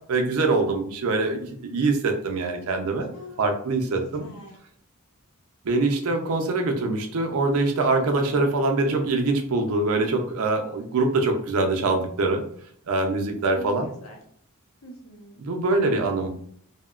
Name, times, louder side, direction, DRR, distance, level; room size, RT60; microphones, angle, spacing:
voice 1, 0.1-3.1 3.4-4.3 5.6-12.4 12.9-13.9 15.4-16.3, right 3 dB, 70° right, 4 dB, 0.4 m, -24 dB
voice 2, 3.1-3.6 4.2-4.6 13.5-14.2 14.8-15.4, equal, 80° left, 1 dB, 0.7 m, -44 dB
2.7 x 2.1 x 2.3 m, 0.62 s
head